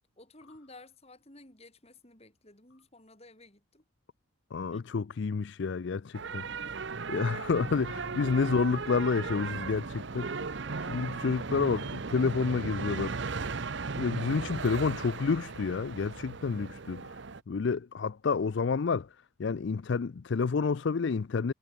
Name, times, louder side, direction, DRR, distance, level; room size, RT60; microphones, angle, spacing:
voice 1, 0.2-3.8 4.7-4.8 7.2-7.3 10.6-11.1 14.1-14.5, left 2 dB, 30° left, 3.9 m, -54 dB
voice 2, 4.5-6.4 7.1-10.5 10.9-13.2 14.0-17.2 17.5-19.1 19.4-21.5, left 5 dB, 55° left, 0.4 m, -29 dB
sound 1, 6.1-17.4, right 4 dB, 60° right, 0.8 m, -37 dB
head